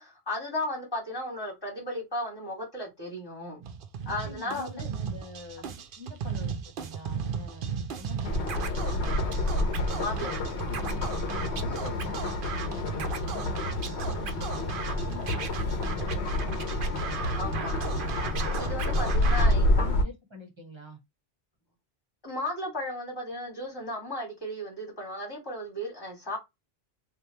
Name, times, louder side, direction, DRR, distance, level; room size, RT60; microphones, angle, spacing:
voice 1, 0.0-3.6 4.1-4.9 10.0-10.3 17.3-17.7 18.6-20.0 22.2-26.4, left 1 dB, 20° left, 1.9 m, -35 dB
Scratching (performance technique), 3.6-19.5, right 6 dB, 60° right, 0.7 m, -37 dB
voice 2, 4.1-9.0 9.8-16.8 19.2-21.0, left 2 dB, 30° right, 1.0 m, -46 dB
sound 1, 8.2-20.0, left 1 dB, 80° left, 1.0 m, -28 dB
3.3 x 2.5 x 2.8 m
omnidirectional pair, 1.1 m